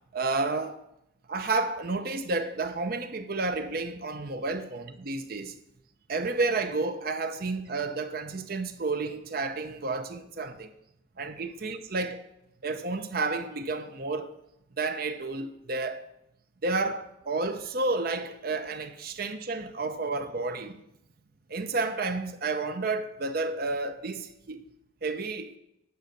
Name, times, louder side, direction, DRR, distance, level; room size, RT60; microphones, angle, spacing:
voice 1, 0.1-0.8 1.3-5.6 6.1-10.7 11.2-12.2 12.6-14.3 14.8-16.0 16.6-20.7 21.5-24.6 25.0-25.5, right 3 dB, 50° right, 0.6 m, -31 dB
9.2 x 5.3 x 6.5 m
head